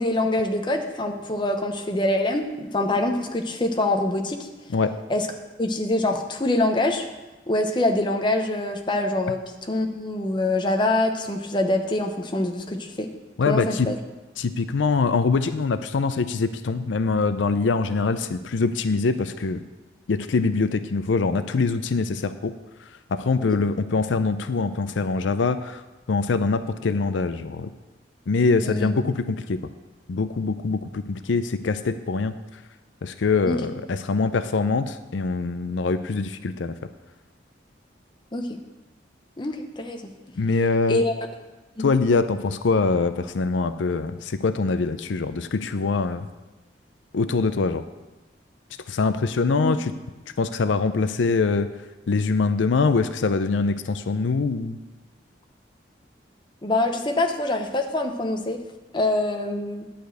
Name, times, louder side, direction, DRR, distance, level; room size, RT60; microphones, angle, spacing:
voice 1, 0.0-4.5 5.1-5.3 5.6-7.1 7.5-9.4 9.7-13.1 13.5-14.0 28.6-28.9 33.4-33.6 38.3-38.6 39.4-40.0 40.9-41.3 41.8-41.9 49.5-49.7 56.6-58.6 58.9-59.9, left 2 dB, 25° left, 4 dB, 0.8 m, -25 dB
voice 2, 13.4-13.9 14.4-19.6 20.1-22.5 23.1-25.8 26.1-27.7 28.3-29.6 30.1-32.4 33.0-36.7 40.4-41.0 41.8-46.3 47.1-47.8 48.9-49.9 50.4-51.7 52.1-54.8, left 4 dB, 90° left, 11 dB, 0.5 m, -23 dB
10.5 x 5.1 x 7.8 m, 1.1 s
head